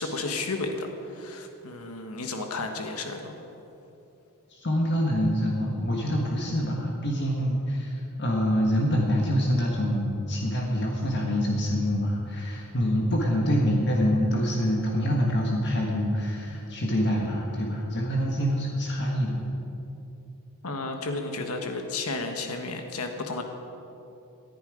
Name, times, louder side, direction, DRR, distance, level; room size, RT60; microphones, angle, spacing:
voice 1, 0.0-3.4 20.6-23.4, left 3 dB, 80° left, 4 dB, 1.3 m, -32 dB
voice 2, 4.5-19.4, equal, 55° left, -1 dB, 1.5 m, -26 dB
18.5 x 10.5 x 5.0 m, 2.9 s
head